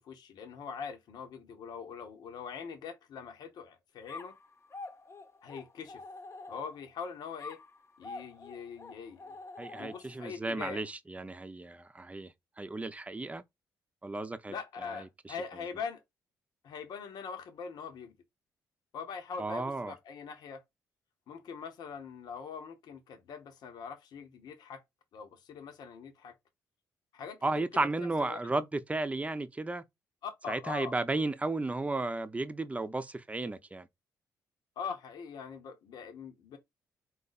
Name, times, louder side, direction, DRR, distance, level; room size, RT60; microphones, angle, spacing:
voice 1, 0.0-4.3 5.4-6.0 6.5-7.6 8.0-9.4 9.8-10.8 14.5-16.0 16.6-18.1 18.9-20.6 21.3-24.8 25.1-26.3 27.1-27.6 28.0-28.4 30.2-30.9 34.8-36.6, left 6 dB, 70° left, 0.9 m, -42 dB
sound 1, 4.1-6.9 7.4-10.3, left 3 dB, 40° left, 0.9 m, -47 dB
voice 2, 9.6-13.4 14.0-14.5 14.9-15.3 19.4-19.9 27.4-29.8 30.5-33.9, right 2 dB, 20° right, 0.7 m, -34 dB
4.2 x 2.6 x 4.0 m
supercardioid pair, 60°, 7 cm